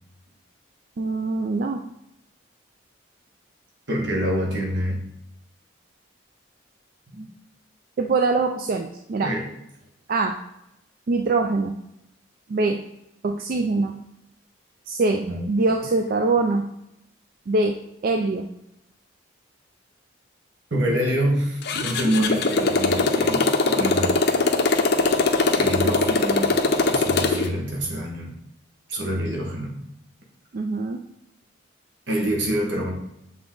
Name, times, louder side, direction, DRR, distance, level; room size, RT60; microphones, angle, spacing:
voice 1, 1.0-1.8 8.0-9.3 10.1-10.4 11.1-11.8 12.5-12.8 13.2-14.0 14.9-16.7 17.5-17.8 18.0-18.5 30.5-31.0, right 3 dB, 45° right, 4 dB, 0.3 m, -23 dB
voice 2, 3.9-5.0 7.1-7.3 9.2-9.5 15.2-15.5 20.7-24.2 25.5-26.6 26.9-28.3 28.9-29.8 32.1-32.9, equal, 65° right, -1 dB, 1.3 m, -26 dB
Motorcycle, 21.6-27.5, left 3 dB, 55° left, 0.5 m, -21 dB
7.1 x 3.5 x 3.8 m, 0.82 s
head